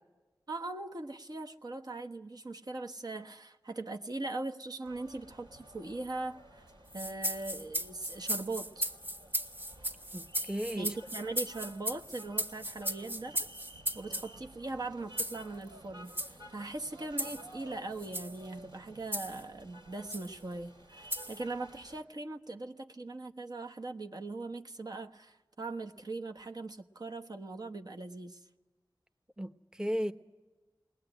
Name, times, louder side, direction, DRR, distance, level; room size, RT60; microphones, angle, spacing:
voice 1, 0.5-6.6 6.9-8.9 10.8-13.5 13.9-28.4, right 2 dB, 55° right, 1.1 m, -40 dB
sound 1, 4.8-22.0, right 1 dB, 80° right, 3.9 m, -54 dB
sound 2, 6.9-14.3 15.2-15.4 16.1-16.3 17.2-17.4 18.0-18.4 19.1-19.4 20.1-20.3 21.1-21.4, equal, 25° right, 1.6 m, -36 dB
voice 2, 10.1-10.9 29.4-30.1, equal, 10° right, 0.9 m, -35 dB
21.0 x 19.5 x 9.0 m
wide cardioid pair, 55°, 8 cm